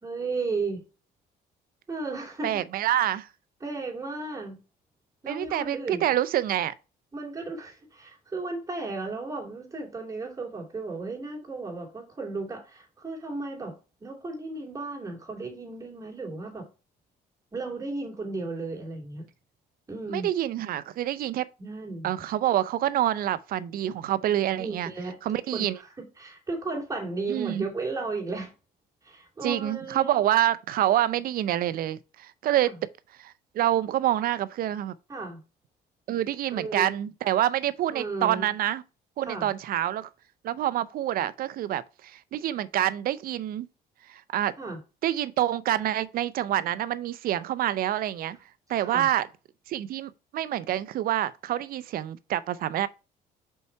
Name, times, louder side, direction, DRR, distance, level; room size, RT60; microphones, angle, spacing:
voice 1, 0.0-0.8 1.9-2.6 3.6-4.6 5.2-6.0 7.1-16.7 17.5-19.2 19.9-20.3 21.6-22.1 24.6-25.2 25.5-25.9 26.2-28.5 29.0-30.1 32.6-32.7 35.1-35.4 36.5-36.9 37.9-38.5 39.3-39.5 44.6-44.8 48.8-49.1, right 3 dB, 20° right, 2.7 m, -34 dB
voice 2, 2.4-3.3 5.3-6.7 20.1-21.5 22.0-24.9 25.2-25.8 27.3-27.7 29.4-32.7 33.2-34.9 36.1-38.8 39.2-40.1 40.4-43.7 44.1-44.5 45.0-48.4 48.7-49.3 49.7-52.9, right 12 dB, 60° right, 0.5 m, -27 dB
5.5 x 4.6 x 4.5 m
cardioid pair, 110°, 17 cm